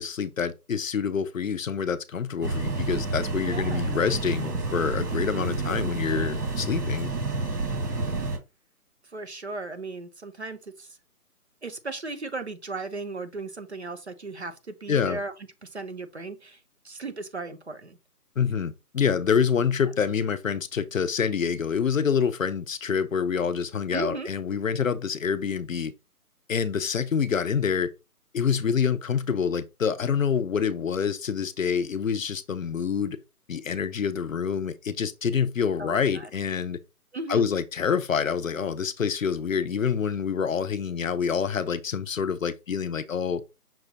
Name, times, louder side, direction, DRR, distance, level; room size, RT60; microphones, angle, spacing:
voice 1, 0.0-7.1 14.9-15.2 18.4-25.9 26.5-27.9 28.3-33.2 33.5-36.8 37.3-43.4, left 6 dB, 60° left, 0.5 m, -26 dB
sound 1, 2.4-8.4, right 2 dB, 85° right, 1.5 m, -29 dB
voice 2, 3.4-3.9 5.3-5.8 9.1-10.9 11.6-15.3 15.6-16.6 16.8-18.0 23.9-24.3 35.8-36.3 37.1-37.4, right 3 dB, 45° right, 0.5 m, -36 dB
5.9 x 2.2 x 4.0 m
hypercardioid pair, 170°, 46 cm